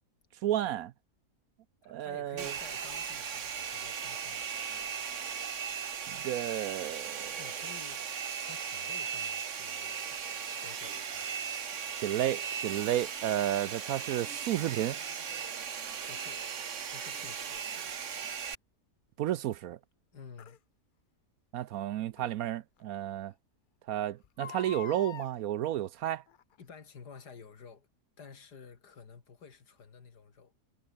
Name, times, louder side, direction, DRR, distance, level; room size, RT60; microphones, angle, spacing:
voice 1, 0.4-0.9 1.9-2.5 6.1-7.5 12.0-15.0 19.2-19.8 21.5-23.3 23.9-26.2, right 12 dB, 70° right, 1.0 m, -32 dB
voice 2, 1.8-4.9 7.3-8.1 8.4-11.3 16.1-16.4 16.9-17.7 20.1-20.6 26.6-27.9 28.2-30.5, left 5 dB, 80° left, 2.8 m, -52 dB
Domestic sounds home sounds, 2.4-18.6, right 7 dB, 50° right, 1.5 m, -37 dB
Crying sobbing, 17.8-17.9 20.4-20.6 22.2-22.3 22.8-22.9 23.1-23.2 24.2-25.3 26.3-26.6 27.2-27.3, left 8 dB, 55° left, 0.5 m, -44 dB
omnidirectional pair, 1.7 m